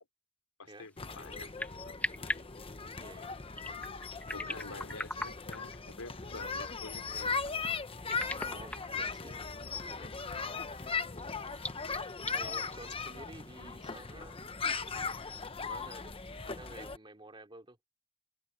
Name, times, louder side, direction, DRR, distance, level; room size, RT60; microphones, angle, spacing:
voice 1, 0.6-1.5 1.8-1.9 4.3-7.5, left 3 dB, 85° left, 3.1 m, -48 dB
sound 1, 0.7-15.1, left 1 dB, 5° left, 1.6 m, -45 dB
sound 2, 1.0-17.0, left 5 dB, 25° left, 1.0 m, -38 dB
voice 2, 3.0-3.4 4.4-4.6 8.2-9.3 9.9-10.2 12.3-14.4 15.5-16.1 16.5-17.8, right 2 dB, 25° right, 2.9 m, -51 dB
head